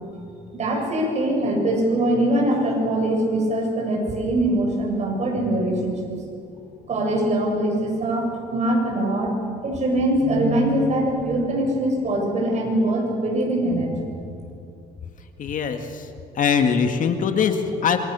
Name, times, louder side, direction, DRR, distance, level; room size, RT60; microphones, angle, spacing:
voice 1, 0.5-6.1 6.9-9.3 9.6-14.0, right 1 dB, 40° right, 0 dB, 7.5 m, -22 dB
voice 2, 15.4-16.1 16.4-18.0, left 6 dB, 50° left, 6 dB, 2.0 m, -22 dB
27.0 x 23.0 x 7.0 m, 2.5 s
cardioid pair, 110°, 17 cm